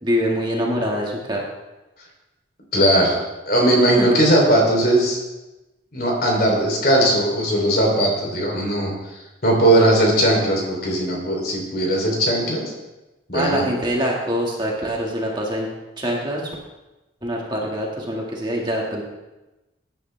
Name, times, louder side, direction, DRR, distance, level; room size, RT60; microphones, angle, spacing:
voice 1, 0.0-1.4 4.0-4.2 13.3-15.7 16.0-16.5 17.2-19.0, equal, 25° right, -2 dB, 1.8 m, -24 dB
voice 2, 2.7-3.2 3.5-5.2 5.9-8.9 9.4-12.6 13.3-13.6, right 1 dB, 50° left, 0 dB, 3.3 m, -18 dB
17.0 x 10.0 x 3.4 m, 1.0 s
head